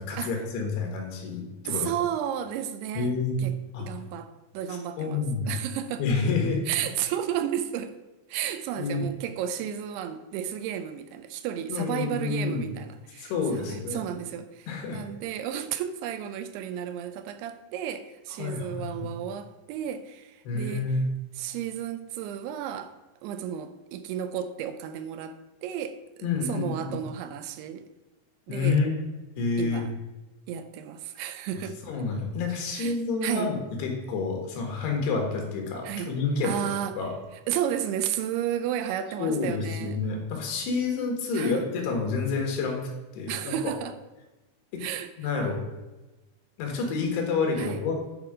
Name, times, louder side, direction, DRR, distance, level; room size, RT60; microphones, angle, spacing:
voice 1, 0.0-1.9 3.0-3.4 3.7-3.9 5.0-5.5 6.0-6.6 8.8-9.0 11.7-12.7 13.2-14.0 14.7-15.0 18.4-19.1 20.5-21.1 26.2-27.0 28.5-28.9 29.4-29.9 31.8-36.6 37.0-37.1 39.2-42.8 43.2-43.7 44.7-44.8 45.2-45.6 46.6-48.0, left 4 dB, 85° left, 3.6 m, -28 dB
voice 2, 1.6-3.1 3.4-6.0 6.7-8.0 8.3-13.3 13.7-20.9 21.4-23.0 23.2-26.0 26.4-27.9 28.5-28.8 29.6-29.9 30.5-31.8 32.5-33.5 35.8-36.1 36.4-37.0 37.5-40.1 41.3-41.7 43.3-44.0 44.8-45.1 47.6-47.8, right 10 dB, 85° right, 2.6 m, -33 dB
10.5 x 4.8 x 4.9 m
omnidirectional pair, 4.7 m